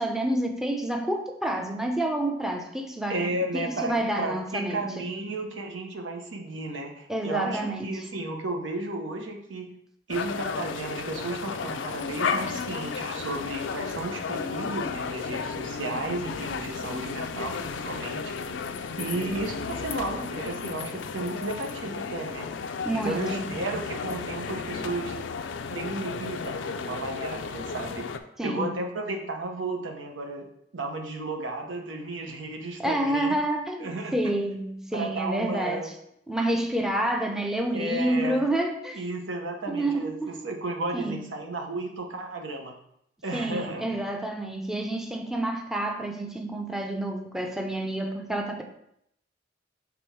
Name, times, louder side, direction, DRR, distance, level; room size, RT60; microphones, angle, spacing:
voice 1, 0.0-5.0 7.1-8.1 22.8-23.6 28.4-28.7 32.8-35.9 36.3-39.0 39.7-40.4 40.9-41.2 43.3-48.6, right 1 dB, 5° right, 2 dB, 0.5 m, -29 dB
voice 2, 3.1-9.7 10.1-18.3 19.0-22.5 22.9-25.2 25.7-28.1 28.4-33.4 33.8-34.2 34.9-35.9 37.7-38.4 39.0-42.8 43.2-44.0, right 2 dB, 85° right, 3 dB, 0.9 m, -33 dB
sound 1, 10.1-28.2, left 5 dB, 75° left, 0.4 m, -33 dB
6.1 x 3.4 x 4.6 m, 0.74 s
head